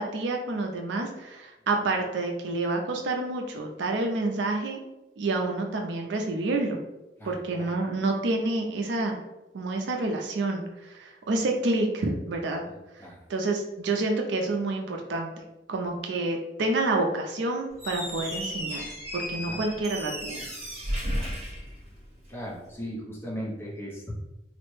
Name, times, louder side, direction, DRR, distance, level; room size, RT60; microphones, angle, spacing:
voice 1, 0.0-4.8 5.2-6.8 7.3-9.2 9.5-12.6 13.3-15.3 15.7-18.8 19.1-20.5, right 2 dB, 70° right, 2 dB, 0.4 m, -28 dB
voice 2, 7.2-7.7 12.7-13.2 19.5-19.6 21.2-21.3 22.3-24.1, equal, 10° left, -5 dB, 0.7 m, -38 dB
Squeak, 17.7-22.4, equal, 35° right, 0.9 m, -34 dB
3.2 x 2.1 x 3.1 m, 0.98 s
head